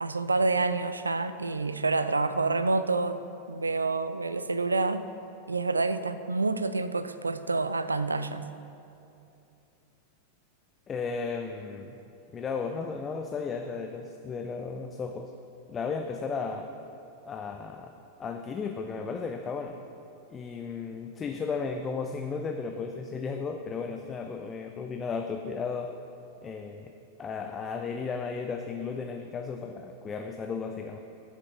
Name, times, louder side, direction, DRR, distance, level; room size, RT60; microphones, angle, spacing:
voice 1, 0.0-3.2 3.5-5.0 5.5-8.5, right 3 dB, 80° right, 12 dB, 0.3 m, -28 dB
voice 2, 10.9-12.0 12.3-15.3 15.7-16.7 17.2-17.9 18.2-19.8 20.3-25.9 26.4-26.9 27.2-31.0, left 5 dB, 20° left, 4 dB, 0.4 m, -34 dB
10.0 x 7.3 x 3.8 m, 2.7 s
figure-of-eight pair, 90°, 0 cm